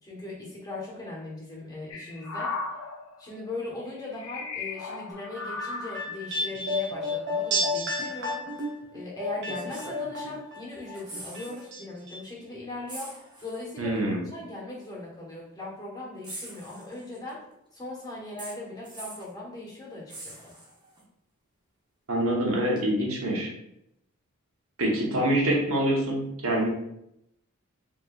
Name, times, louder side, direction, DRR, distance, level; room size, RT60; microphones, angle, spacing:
voice 1, 0.0-2.5 3.2-8.5 8.9-13.1 13.4-14.0 14.3-17.4 17.7-20.6, left 2 dB, 20° left, -5 dB, 1.3 m, -39 dB
sound 1, 1.9-3.3 4.0-6.1 6.9-7.3, left 3 dB, 75° left, 0.6 m, -36 dB
sound 2, 5.4-10.6 10.9-11.8 12.1-12.2, left 1 dB, 50° right, 0.8 m, -31 dB
sound 3, 8.6-8.7 9.5-10.6 10.8-11.7 12.0-12.1 12.9-13.7 14.8-14.9 16.2-17.3 18.4-19.3 20.1-21.0 22.8-22.9, right 2 dB, 20° right, 0.8 m, -43 dB
voice 2, 13.8-14.2 22.1-23.5 24.8-26.7, right 1 dB, 75° right, -2 dB, 1.0 m, -25 dB
5.0 x 3.0 x 2.4 m, 0.81 s
head